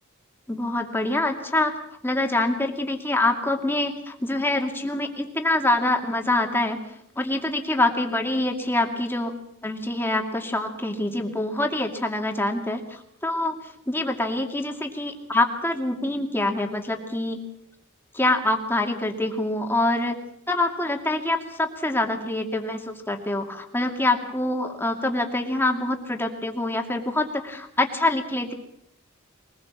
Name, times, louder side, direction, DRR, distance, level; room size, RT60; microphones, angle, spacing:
voice 1, 0.5-1.7 2.0-6.8 7.2-9.4 9.6-13.6 13.9-17.4 18.1-20.2 20.5-28.5, left 2 dB, 10° left, 3 dB, 2.4 m, -25 dB
23.0 x 20.0 x 7.3 m, 0.72 s
head